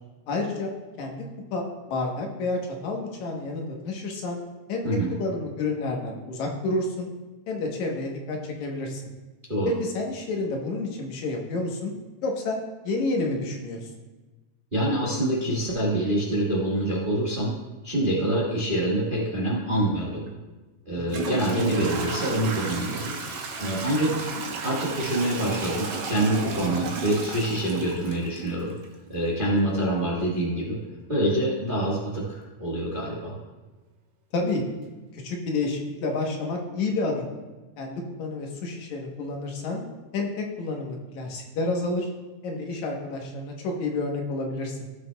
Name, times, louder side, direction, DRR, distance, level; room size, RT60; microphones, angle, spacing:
voice 1, 0.3-0.7 1.0-1.3 1.5-4.4 4.7-4.8 5.1-7.1 7.5-9.0 9.8-11.9 12.2-12.6 12.8-13.9 20.9-21.2 34.3-34.6 35.1-37.3 37.8-39.8 40.1-42.1 42.4-44.8, left 2 dB, 75° left, 1 dB, 2.4 m, -29 dB
voice 2, 14.7-17.5 17.8-20.3 20.9-23.1 23.6-24.1 24.6-28.7 29.1-30.8 31.1-33.3, right 1 dB, 35° right, -4 dB, 0.8 m, -26 dB
Toilet flush / Trickle dribble, 20.3-20.4 21.0-28.8, right 4 dB, 60° right, 1.4 m, -33 dB
16.0 x 6.4 x 2.2 m, 1.2 s
omnidirectional pair, 3.4 m